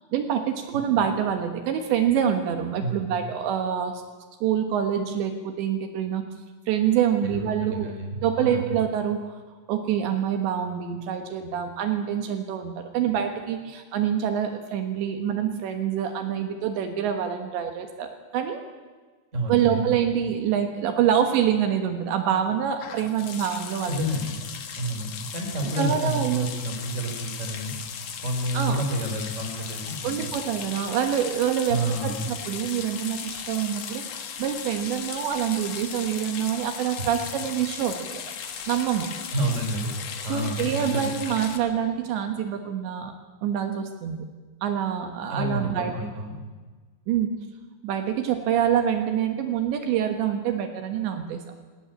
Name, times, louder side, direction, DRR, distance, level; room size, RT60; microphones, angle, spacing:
voice 1, 0.1-4.0 4.4-6.2 6.7-7.9 8.2-9.2 9.7-18.6 19.5-24.2 25.8-26.5 28.5-28.8 30.0-38.2 38.7-39.1 40.3-43.1 43.4-44.3 44.6-45.9 47.1-47.3 47.8-51.4, right 9 dB, 75° right, 6 dB, 3.5 m, -26 dB
voice 2, 7.2-8.7 19.3-19.9 23.8-24.4 24.8-27.7 28.2-30.3 31.7-32.3 37.0-37.1 39.3-39.9 40.2-41.1 45.3-46.4, right 1 dB, 15° right, 3 dB, 3.2 m, -29 dB
sound 1, 22.8-41.6, left 7 dB, 90° left, 1.4 m, -37 dB
20.5 x 17.5 x 8.7 m, 1.3 s
omnidirectional pair, 5.4 m